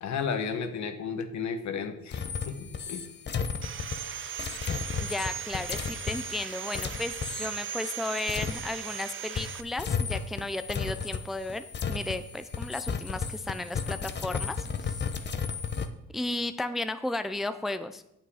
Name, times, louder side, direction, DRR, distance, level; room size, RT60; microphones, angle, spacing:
voice 1, 0.0-3.0, left 6 dB, 70° left, 8 dB, 1.2 m, -33 dB
sound 1, 2.1-9.1 9.4-15.9, left 6 dB, 35° left, 0.8 m, -34 dB
Sawing, 3.6-9.6, right 8 dB, 40° right, 0.6 m, -38 dB
voice 2, 5.0-14.9 15.3-15.4 16.1-18.0, left 2 dB, ahead, 11 dB, 0.4 m, -34 dB
8.9 x 7.6 x 4.8 m, 0.82 s
cardioid pair, 90°, 30 cm